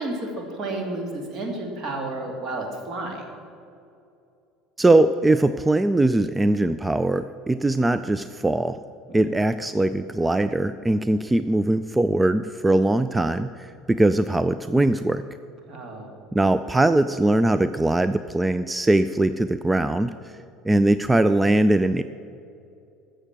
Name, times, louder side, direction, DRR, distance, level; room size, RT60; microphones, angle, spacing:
voice 1, 0.0-3.3 9.1-9.4 15.7-16.2, right 2 dB, 40° right, 2 dB, 2.4 m, -31 dB
voice 2, 4.8-8.8 9.1-15.2 16.3-20.1 20.7-22.0, right 2 dB, 10° right, 12 dB, 0.4 m, -21 dB
14.5 x 6.5 x 7.5 m, 2.6 s
figure-of-eight pair, 65°, 0 cm